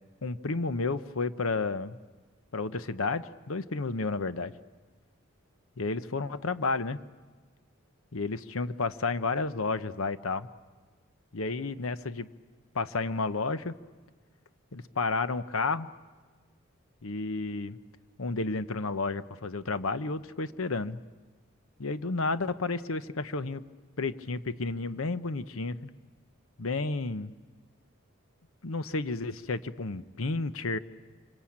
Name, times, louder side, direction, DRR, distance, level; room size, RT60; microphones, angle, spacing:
voice 1, 0.2-2.0 2.5-4.5 5.8-7.0 8.1-10.5 11.3-12.3 12.7-13.7 14.7-15.9 17.0-17.8 18.2-21.0 21.8-23.6 24.0-25.9 26.6-27.3 28.6-30.8, left 3 dB, 80° left, 13 dB, 0.9 m, -31 dB
27.5 x 24.5 x 8.7 m, 1.4 s
head